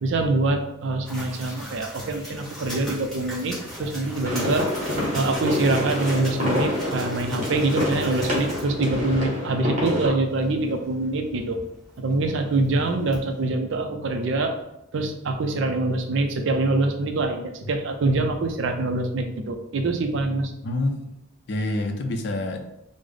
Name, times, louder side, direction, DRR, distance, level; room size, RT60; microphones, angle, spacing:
voice 1, 0.0-4.7 5.1-11.6 12.0-14.6 14.9-20.5, right 2 dB, 60° right, 5 dB, 0.4 m, -25 dB
sound 1, 1.0-13.4, equal, ahead, 1.0 m, -40 dB
sound 2, 4.2-10.1, left 1 dB, 35° right, 0.9 m, -27 dB
voice 2, 20.6-21.1 21.5-22.6, left 1 dB, 55° left, 5 dB, 0.4 m, -27 dB
3.3 x 2.0 x 3.7 m, 0.81 s
head